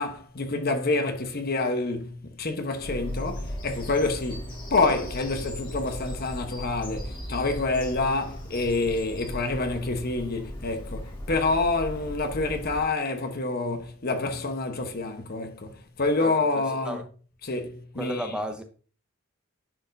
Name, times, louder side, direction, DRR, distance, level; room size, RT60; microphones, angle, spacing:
voice 1, 0.0-17.0 17.4-18.3, left 3 dB, 50° left, 1.0 m, -27 dB
Bird vocalization bird call bird song, 2.8-12.8, equal, 25° left, 2.0 m, -37 dB
voice 2, 16.2-17.0 18.0-18.6, equal, 5° right, 0.7 m, -34 dB
10.5 x 4.3 x 2.6 m
head